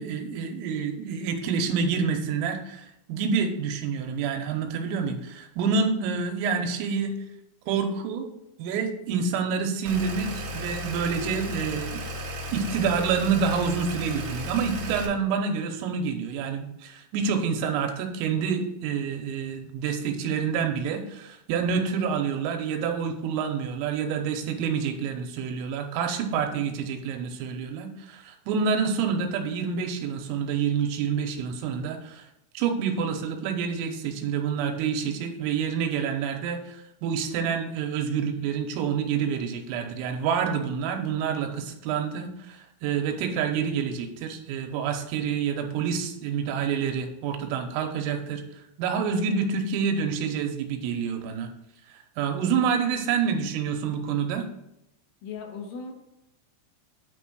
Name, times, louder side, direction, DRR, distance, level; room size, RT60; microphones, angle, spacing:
voice 1, 0.0-7.1 7.7-8.3 8.6-12.0 12.5-32.3 32.5-48.4 48.8-51.5 52.2-54.5, right 6 dB, 85° right, 4 dB, 3.5 m, -28 dB
sound 1, 9.9-15.1, equal, 65° right, 1.9 m, -34 dB
voice 2, 55.2-55.9, left 5 dB, 75° left, 0 dB, 3.8 m, -37 dB
9.3 x 3.6 x 6.1 m, 0.81 s
omnidirectional pair, 5.9 m